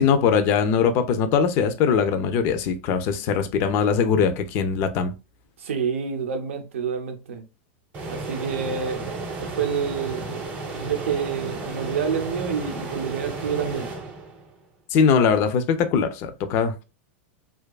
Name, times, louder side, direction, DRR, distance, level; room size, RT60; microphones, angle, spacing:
voice 1, 0.0-5.1 14.9-16.9, left 6 dB, 40° left, 0.4 m, -21 dB
voice 2, 5.6-7.4 8.1-10.4 10.7-13.9, right 6 dB, 85° right, 0.6 m, -28 dB
sound 1, 7.9-14.6, right 3 dB, 25° right, 0.8 m, -33 dB
2.5 x 2.3 x 2.2 m
supercardioid pair, 140°, 7 cm